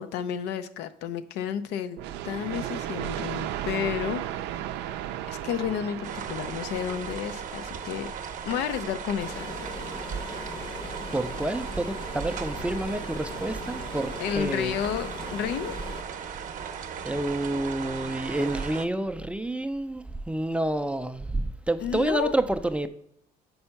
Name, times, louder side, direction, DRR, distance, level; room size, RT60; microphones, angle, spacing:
voice 1, 0.0-4.5 5.3-8.1 8.5-9.5 14.2-15.8 21.8-22.3, left 9 dB, 85° left, 0.5 m, -31 dB
sound 1, 2.0-7.7, right 11 dB, 90° right, 0.4 m, -35 dB
sound 2, 6.0-18.9, right 7 dB, 50° right, 0.7 m, -37 dB
sound 3, 9.2-16.0, left 2 dB, 30° left, 0.7 m, -40 dB
voice 2, 11.1-14.8 17.0-22.9, right 1 dB, 5° right, 0.3 m, -29 dB
5.5 x 4.3 x 5.7 m
cardioid pair, 110°, 17 cm